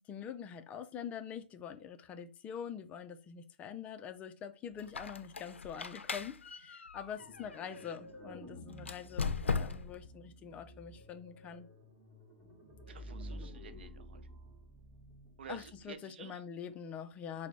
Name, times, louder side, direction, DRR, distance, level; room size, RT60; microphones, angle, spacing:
voice 1, 0.0-11.7 15.5-17.5, left 8 dB, 20° left, 0.4 m, -45 dB
Squeak, 4.8-8.0 8.8-10.1, left 5 dB, 90° left, 0.4 m, -38 dB
sound 1, 7.2-15.9, equal, 10° right, 1.5 m, -51 dB
voice 2, 12.9-14.2 15.4-16.4, right 7 dB, 65° right, 0.5 m, -50 dB
5.8 x 2.1 x 3.2 m
hypercardioid pair, 125°, 6 cm